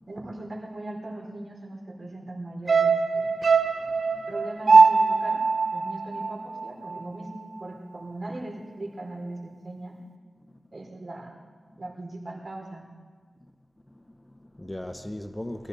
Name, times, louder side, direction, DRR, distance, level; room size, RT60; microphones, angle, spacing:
voice 1, 0.1-3.3 4.3-5.4 5.7-7.3 7.6-10.0 10.7-11.4 11.8-12.8, right 2 dB, 55° right, 4.2 m, -39 dB
sound 1, 2.7-7.1 7.4-7.5, right 4 dB, 75° right, 0.8 m, -21 dB
voice 2, 3.9-4.3 13.9-15.7, left 1 dB, 15° left, 0.9 m, -39 dB
23.0 x 15.0 x 4.1 m
cardioid pair, 50°, 0 cm